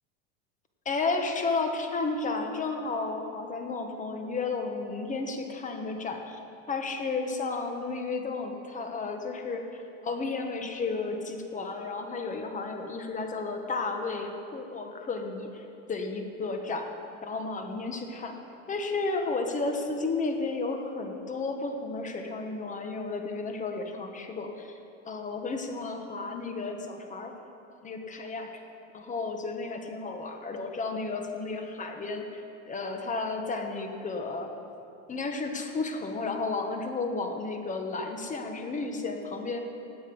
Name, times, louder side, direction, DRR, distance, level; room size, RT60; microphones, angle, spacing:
voice 1, 0.8-6.4 6.7-16.9 17.2-18.3 18.7-24.8 25.0-27.3 27.8-28.5 28.9-34.5 35.1-39.6, left 3 dB, 20° left, 4 dB, 1.3 m, -33 dB
17.0 x 9.0 x 5.4 m, 2.7 s
supercardioid pair, 130°, 38 cm